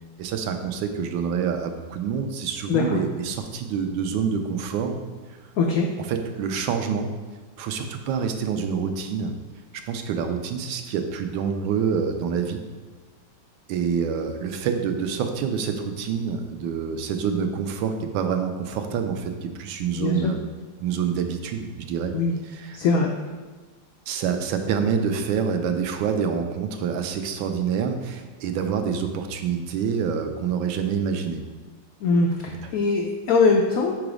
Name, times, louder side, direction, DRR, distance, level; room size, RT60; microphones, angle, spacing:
voice 1, 0.2-5.0 6.1-7.1 7.6-9.3 9.9-12.6 13.7-20.4 20.8-22.1 22.5-22.8 24.1-31.4 32.5-32.6, right 6 dB, 85° right, 6 dB, 1.4 m, -27 dB
voice 2, 2.7-3.0 5.6-5.9 20.0-20.3 22.1-22.3 22.7-23.1 32.0-34.0, left 4 dB, 85° left, 1 dB, 0.7 m, -21 dB
4.9 x 4.0 x 4.8 m, 1.3 s
omnidirectional pair, 2.1 m